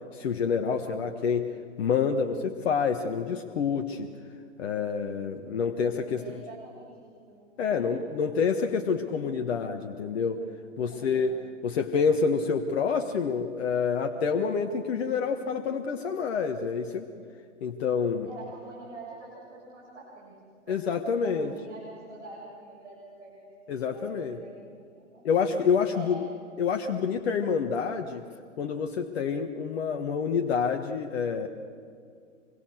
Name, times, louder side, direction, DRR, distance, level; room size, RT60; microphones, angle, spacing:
voice 1, 0.1-1.5 1.8-4.1 4.6-6.2 7.6-10.4 10.8-11.4 11.6-17.1 17.6-18.3 20.7-21.5 23.7-24.4 25.2-26.2 26.6-28.2 28.6-31.5, left 6 dB, 55° left, 5 dB, 1.5 m, -27 dB
voice 2, 6.1-8.0 8.3-8.4 8.7-8.9 10.9-11.3 18.1-20.3 20.7-25.2 25.9-26.2, right 2 dB, 65° right, -4 dB, 7.0 m, -46 dB
26.0 x 22.5 x 6.5 m, 2.2 s
figure-of-eight pair, 110°, 38 cm